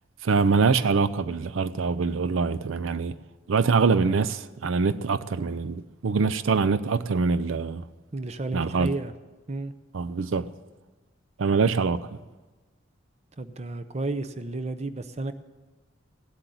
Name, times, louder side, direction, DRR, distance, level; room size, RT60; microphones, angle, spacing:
voice 1, 0.2-3.2 3.5-7.8 8.5-8.9 9.9-10.5 11.4-12.1, right 4 dB, 80° right, 0.5 m, -24 dB
voice 2, 8.1-9.1 9.5-9.7 13.4-15.3, right 2 dB, 30° right, 0.6 m, -32 dB
17.0 x 7.9 x 9.2 m
head